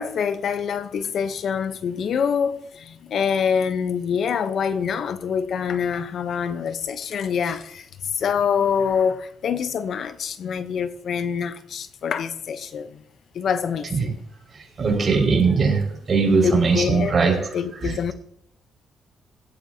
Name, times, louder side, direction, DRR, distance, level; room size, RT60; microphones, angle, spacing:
voice 1, 0.0-7.9 8.1-12.9 13.3-14.2 16.4-17.2 17.5-18.1, left 7 dB, 60° left, 0.8 m, -25 dB
voice 2, 14.5-17.5 17.8-18.1, right 4 dB, 40° right, 5.3 m, -20 dB
17.0 x 13.5 x 2.8 m
cardioid pair, 90°, 0 cm